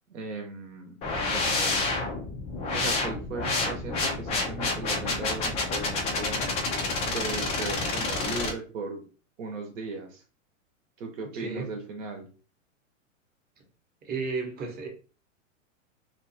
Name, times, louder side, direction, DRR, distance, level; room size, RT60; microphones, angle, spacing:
voice 1, 0.1-1.0 1.3-2.0 2.7-6.5 7.0-9.0 9.4-10.2 11.0-12.3, right 3 dB, 65° right, 0.9 m, -37 dB
sound 1, 1.0-8.5, left 3 dB, 15° left, 0.3 m, -29 dB
voice 2, 11.3-11.7 14.0-14.9, right 4 dB, 25° right, 0.8 m, -33 dB
2.6 x 2.3 x 2.6 m
hypercardioid pair, 110°, 40 cm